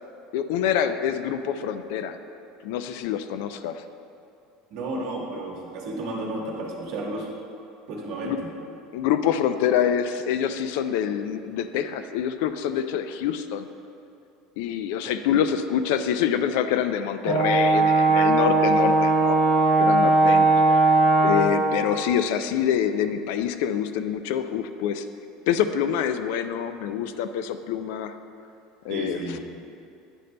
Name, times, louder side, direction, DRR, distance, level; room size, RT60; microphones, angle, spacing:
voice 1, 0.3-2.2 2.6-3.8 8.2-8.4 8.9-13.7 14.6-19.4 19.8-20.9 21.2-25.1 25.5-28.2 28.8-29.4, left 9 dB, 65° left, 10 dB, 0.3 m, -26 dB
voice 2, 4.7-7.3 7.9-8.5 28.9-29.4, right 2 dB, 50° right, -1 dB, 1.2 m, -32 dB
Brass instrument, 17.2-21.6, right 2 dB, 25° right, 1.3 m, -19 dB
9.8 x 6.6 x 2.2 m, 2.5 s
cardioid pair, 170°, 0 cm